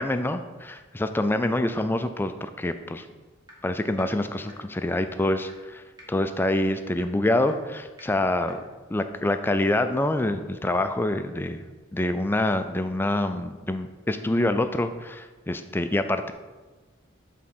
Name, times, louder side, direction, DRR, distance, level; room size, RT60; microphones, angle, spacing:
voice 1, 0.0-3.1 3.6-5.8 6.1-8.6 8.9-11.6 11.9-16.3, left 1 dB, 10° left, 9 dB, 0.3 m, -26 dB
sound 1, 3.5-3.6 4.0-4.1 4.5-4.6 5.0-5.1 5.5-5.6 6.0-6.1 6.5-6.6 7.0-7.1 7.5-7.6 8.0-8.1 8.5-8.6, equal, 20° right, 1.4 m, -47 dB
7.8 x 3.7 x 6.0 m, 1.3 s
head